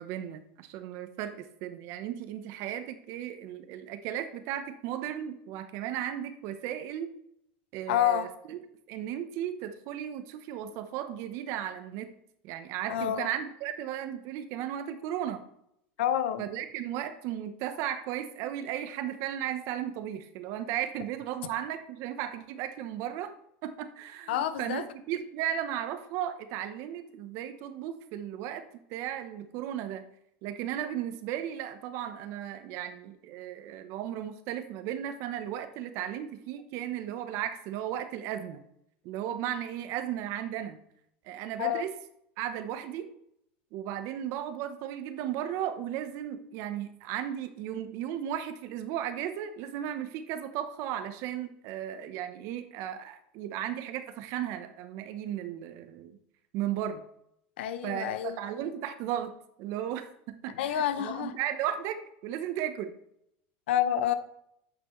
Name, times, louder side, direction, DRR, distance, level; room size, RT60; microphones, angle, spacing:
voice 1, 0.0-7.1 7.7-8.6 8.9-12.1 12.4-15.4 16.4-23.3 23.6-28.6 28.9-30.0 30.4-38.6 39.0-40.8 41.2-41.9 42.4-43.1 43.7-56.2 56.5-57.1 57.8-62.9, right 10 dB, 55° right, 0.9 m, -35 dB
voice 2, 7.9-8.3 12.9-13.3 16.0-16.4 24.3-24.8 41.6-41.8 57.6-58.4 60.6-61.3 63.7-64.1, left 11 dB, 90° left, 0.7 m, -28 dB
8.8 x 6.0 x 3.1 m
supercardioid pair, 130°, 6 cm